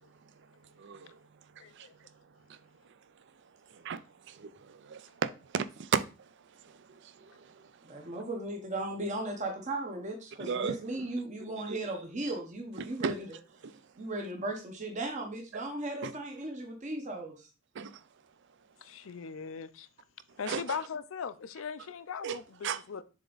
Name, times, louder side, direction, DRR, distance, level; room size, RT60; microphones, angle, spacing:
voice 1, 0.1-8.1 10.4-11.1 11.7-11.8 12.8-13.2 13.6-13.8 15.5-15.6 16.0-16.1 17.7-18.0 20.5-20.8 22.2-22.4 22.6-22.8, right 6 dB, 55° right, 0.4 m, -38 dB
voice 2, 1.6-1.9 18.8-19.9 20.4-23.0, left 6 dB, 65° left, 0.5 m, -39 dB
voice 3, 7.8-13.2 14.0-17.5, right 2 dB, 35° right, 0.9 m, -36 dB
7.2 x 3.4 x 3.9 m
head